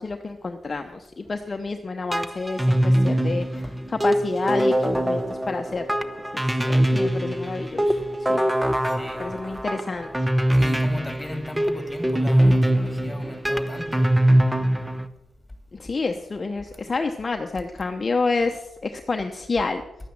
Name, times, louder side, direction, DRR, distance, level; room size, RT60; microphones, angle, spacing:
voice 1, 0.0-5.8 6.3-8.5 9.2-10.3 15.7-19.8, left 3 dB, 35° left, 5 dB, 0.9 m, -29 dB
sound 1, 2.1-15.1, right 1 dB, 5° right, 0.8 m, -22 dB
voice 2, 8.8-9.7 10.5-14.1, left 1 dB, 10° left, 4 dB, 2.8 m, -37 dB
11.5 x 9.1 x 7.4 m, 0.96 s
cardioid pair, 100°, 0 cm